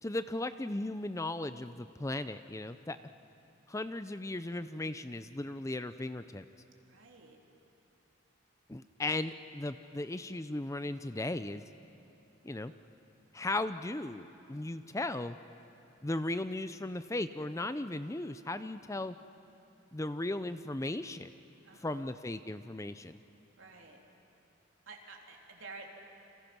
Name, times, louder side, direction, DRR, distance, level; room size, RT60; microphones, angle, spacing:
voice 1, 0.0-3.0 3.7-6.4 8.7-11.6 12.4-12.7 13.3-15.4 16.0-19.1 19.9-21.3 21.8-23.2, left 2 dB, 15° left, 11 dB, 0.5 m, -36 dB
voice 2, 6.8-7.4 21.6-22.1 23.5-24.0 24.9-25.9, right 4 dB, 80° right, 0 dB, 3.3 m, -50 dB
29.5 x 26.0 x 6.1 m, 2.8 s
head